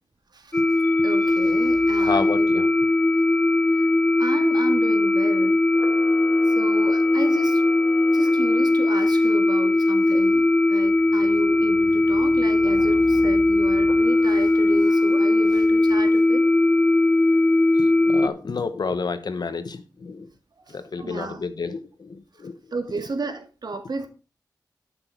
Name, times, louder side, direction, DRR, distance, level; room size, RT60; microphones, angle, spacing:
sound 1, 0.5-18.3, left 2 dB, 20° left, 0.6 m, -19 dB
voice 1, 1.0-2.5 3.7-3.9 4.2-5.6 6.5-7.6 8.1-10.4 10.7-16.4 20.7-21.4 22.7-24.1, right 3 dB, 75° right, 1.9 m, -33 dB
voice 2, 2.0-2.7 17.7-20.3 20.7-22.6, left 4 dB, 75° left, 1.1 m, -30 dB
Camera, 5.7-9.0 12.5-13.3 13.8-15.6, left 3 dB, 60° left, 2.2 m, -44 dB
12.0 x 6.2 x 4.6 m
wide cardioid pair, 75°, 7 cm